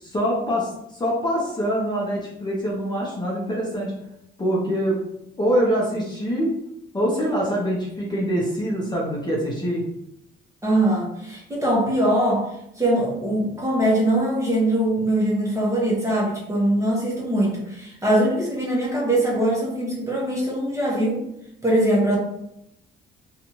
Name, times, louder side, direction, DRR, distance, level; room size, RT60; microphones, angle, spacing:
voice 1, 0.0-3.9 4.4-5.0 5.4-6.5 6.9-9.8, equal, 20° left, -4 dB, 0.8 m, -24 dB
voice 2, 10.6-12.5 12.8-21.2 21.6-22.2, right 1 dB, 15° right, -4 dB, 1.0 m, -22 dB
2.7 x 2.4 x 2.9 m, 0.79 s
cardioid pair, 90°, 20 cm